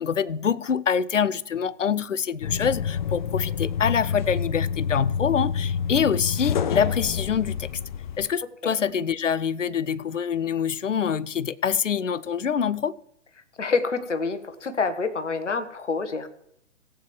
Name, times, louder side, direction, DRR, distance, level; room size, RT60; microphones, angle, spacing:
voice 1, 0.0-7.7 8.2-12.9, left 7 dB, 90° left, 0.5 m, -25 dB
sound 1, 2.4-8.3, left 7 dB, 40° left, 0.5 m, -28 dB
voice 2, 13.6-16.3, left 4 dB, 75° left, 1.3 m, -27 dB
17.5 x 8.6 x 3.1 m
figure-of-eight pair, 120°, 36 cm